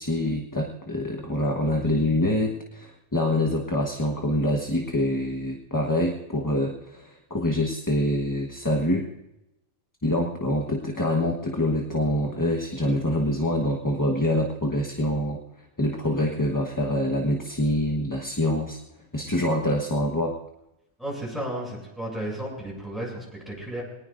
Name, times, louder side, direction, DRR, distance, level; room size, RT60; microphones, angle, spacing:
voice 1, 0.0-9.0 10.0-15.4 15.8-18.8 19.1-20.4, left 1 dB, 15° left, 1 dB, 1.3 m, -25 dB
voice 2, 21.0-23.8, right 1 dB, ahead, -3 dB, 7.5 m, -33 dB
23.0 x 19.5 x 2.6 m, 0.91 s
omnidirectional pair, 1.2 m